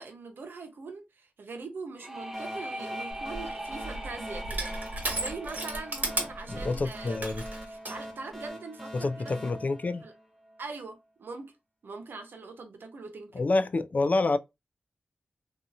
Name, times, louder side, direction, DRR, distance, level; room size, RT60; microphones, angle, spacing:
voice 1, 0.0-7.3 7.7-9.3 10.0-10.1 10.6-11.5 11.8-13.4, right 4 dB, 80° right, 0.7 m, -42 dB
sound 1, 2.0-7.6, right 1 dB, 15° right, 0.6 m, -41 dB
sound 2, 2.3-10.7, equal, 5° left, 1.1 m, -43 dB
Crushing, 3.1-8.0, right 2 dB, 55° right, 1.1 m, -35 dB
voice 2, 6.5-7.4 8.9-10.0 13.3-14.4, left 3 dB, 50° left, 0.3 m, -27 dB
2.7 x 2.3 x 2.6 m
cardioid pair, 55°, 3 cm